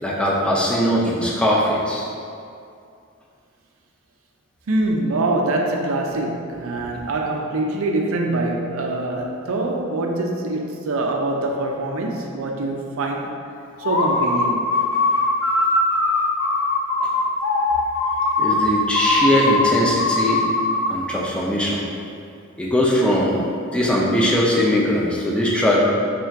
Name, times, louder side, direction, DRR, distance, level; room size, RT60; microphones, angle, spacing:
voice 1, 0.0-2.1 18.4-20.4 20.9-21.8 22.6-23.4 23.7-25.8, equal, 5° left, -4 dB, 0.5 m, -20 dB
voice 2, 4.7-13.3 13.8-14.7, right 2 dB, 70° right, 1 dB, 0.5 m, -24 dB
sound 1, 13.8-21.0, left 2 dB, 65° left, 0.4 m, -21 dB
3.6 x 2.4 x 4.4 m, 2.4 s
head